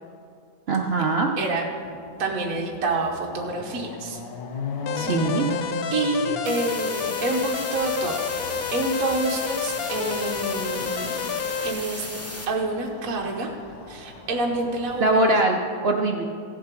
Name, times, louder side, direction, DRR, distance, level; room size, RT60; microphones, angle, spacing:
voice 1, 0.7-1.3 4.9-5.5 15.0-16.2, right 2 dB, 75° right, 2 dB, 0.5 m, -22 dB
Chatter / Car passing by / Motorcycle, 1.2-1.3 1.6-15.2, left 4 dB, 85° left, 1.6 m, -38 dB
voice 2, 2.2-4.2 5.9-8.2 8.7-11.1 11.6-12.1 12.5-13.5 13.9-15.4, right 3 dB, 55° right, 0 dB, 1.4 m, -27 dB
sound 1, 4.9-11.7, left 7 dB, 65° left, 0.9 m, -29 dB
sound 2, 6.4-12.4, left 1 dB, 20° left, 0.4 m, -36 dB
15.5 x 7.3 x 4.5 m, 2.2 s
omnidirectional pair, 1.9 m